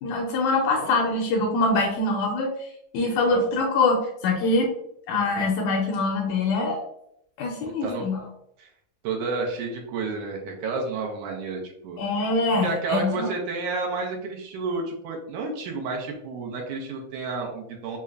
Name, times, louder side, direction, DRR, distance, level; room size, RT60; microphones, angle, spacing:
voice 1, 0.0-2.7 2.9-4.7 5.1-6.8 7.4-8.2 12.0-13.3, left 2 dB, 80° left, 1 dB, 1.8 m, -24 dB
voice 2, 7.6-8.1 8.6-8.7 9.0-12.0 12.6-18.0, right 3 dB, 80° right, 1 dB, 2.0 m, -31 dB
5.5 x 2.1 x 2.3 m, 0.71 s
omnidirectional pair, 3.8 m